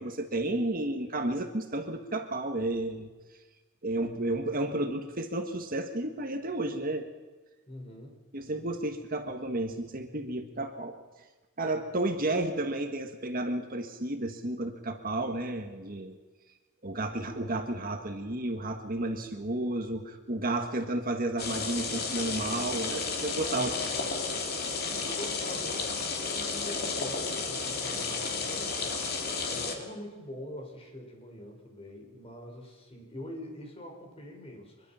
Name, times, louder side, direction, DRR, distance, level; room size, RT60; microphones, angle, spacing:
voice 1, 0.0-3.1 3.8-7.1 8.3-11.0 11.6-16.2 16.8-23.7, right 2 dB, 40° right, 5 dB, 1.7 m, -32 dB
voice 2, 7.7-8.2 23.5-24.0 24.6-34.9, left 1 dB, 25° left, 2 dB, 5.0 m, -44 dB
sound 1, 21.4-29.8, left 4 dB, 45° left, 3.1 m, -32 dB
24.5 x 22.0 x 5.8 m, 1.3 s
head